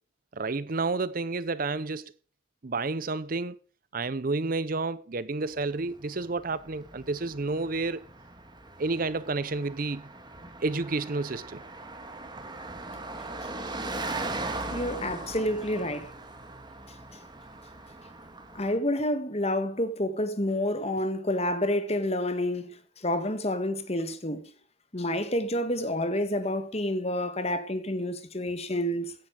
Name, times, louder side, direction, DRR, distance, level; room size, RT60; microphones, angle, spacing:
voice 1, 0.3-2.1 2.6-3.6 3.9-8.0 8.8-10.1 10.6-11.6, right 3 dB, 45° right, 0.6 m, -30 dB
Car passing by, 5.6-18.8, right 2 dB, 20° right, 1.9 m, -39 dB
voice 2, 14.7-16.1 18.5-22.7 23.0-24.5 24.9-29.1, left 1 dB, 30° left, 1.8 m, -29 dB
16.5 x 10.5 x 4.8 m
head